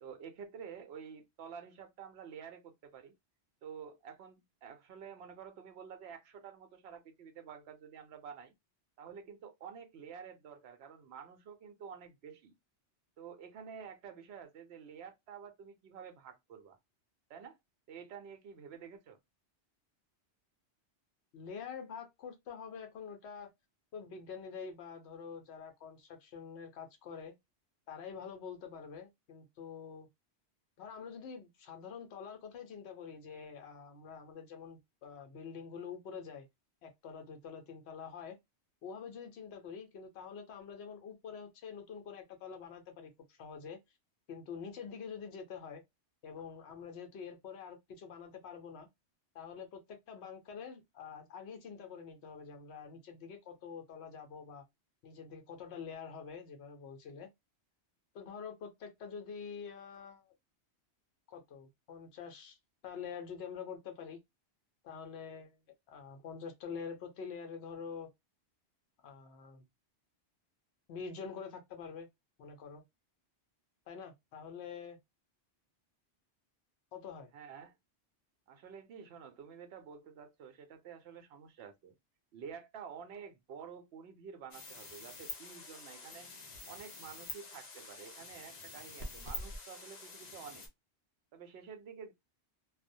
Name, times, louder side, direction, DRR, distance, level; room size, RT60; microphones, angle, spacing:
voice 1, 0.0-3.1 3.6-8.5 9.0-12.5 13.2-16.8 17.3-17.6 17.9-19.2 77.3-77.8 78.5-81.9 82.3-86.3 86.7-90.7 91.3-92.1, right 7 dB, 70° right, 0.8 m, -50 dB
voice 2, 21.3-23.5 23.9-27.3 27.9-30.1 30.8-36.5 36.8-38.4 38.8-43.8 44.3-45.8 46.2-48.9 49.3-54.6 55.0-57.3 58.1-60.3 61.3-62.6 62.8-64.2 64.8-65.6 65.9-68.1 69.0-69.6 70.9-72.1 72.4-72.8 73.9-75.0 76.9-77.3, left 6 dB, 75° left, 1.0 m, -46 dB
sound 1, 84.5-90.7, left 2 dB, 45° left, 0.7 m, -46 dB
2.3 x 2.1 x 2.6 m
omnidirectional pair, 1.2 m